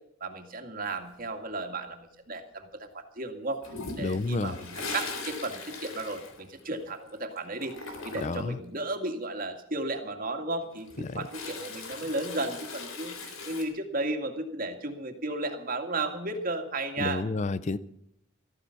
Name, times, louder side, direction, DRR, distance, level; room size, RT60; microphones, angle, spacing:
voice 1, 0.2-3.6 4.0-17.2, right 2 dB, 45° right, 5 dB, 2.1 m, -34 dB
Toilet flush, 3.6-7.1 7.4-8.5 10.6-13.6, left 3 dB, 90° left, 3.6 m, -40 dB
voice 2, 4.0-4.6 8.2-8.6 11.0-11.3 17.0-17.8, left 3 dB, 35° left, 16 dB, 0.5 m, -30 dB
14.5 x 14.5 x 5.9 m, 0.78 s
head